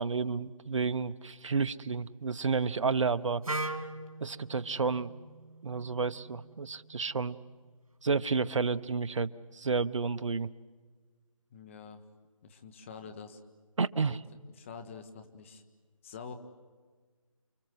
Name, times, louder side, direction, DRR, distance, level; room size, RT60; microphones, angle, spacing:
voice 1, 0.0-3.4 4.2-5.1 5.6-7.4 8.0-10.5 13.8-14.2, right 4 dB, 60° right, 14 dB, 0.9 m, -31 dB
Wind instrument woodwind instrument, 3.4-7.3, right 2 dB, 90° right, 2.6 m, -41 dB
voice 2, 11.5-12.0 12.4-13.4 14.1-14.2 14.6-15.6 16.0-16.3, left 6 dB, 20° left, 7 dB, 1.5 m, -46 dB
29.5 x 23.0 x 7.9 m, 1.4 s
figure-of-eight pair, 160°, 18 cm